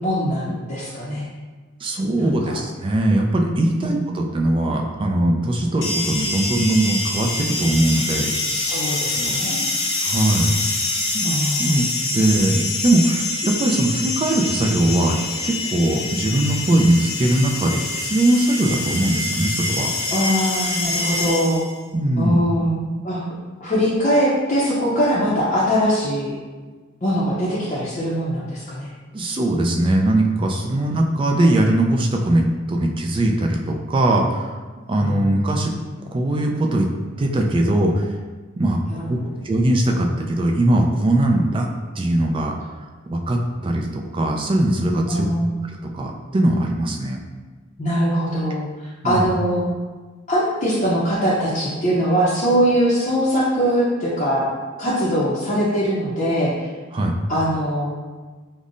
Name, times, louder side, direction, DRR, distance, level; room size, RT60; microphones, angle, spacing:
voice 1, 0.0-1.3 2.2-2.6 3.8-3.9 8.5-9.6 11.2-11.8 20.1-21.6 22.2-22.8 23.0-23.2 23.6-26.3 27.0-28.9 30.8-30.9 35.0-35.3 38.9-39.3 45.1-45.5 47.8-49.6 50.3-54.5 54.8-56.7 57.3-58.0, equal, 40° left, -9 dB, 0.6 m, -22 dB
voice 2, 1.8-8.3 9.1-9.3 10.0-10.5 11.1-11.3 11.6-11.9 12.1-15.2 15.4-19.9 21.9-22.4 29.1-34.6 34.9-35.7 36.1-36.9 37.2-38.1 38.6-38.8 39.1-39.2 39.4-41.7 42.0-42.6 43.1-45.3 45.9-47.2 49.0-49.2 56.9-57.1, right 1 dB, 25° right, 1 dB, 0.3 m, -20 dB
sound 1, 5.8-21.8, left 2 dB, 70° left, 0.8 m, -25 dB
5.3 x 2.1 x 2.5 m, 1.4 s
head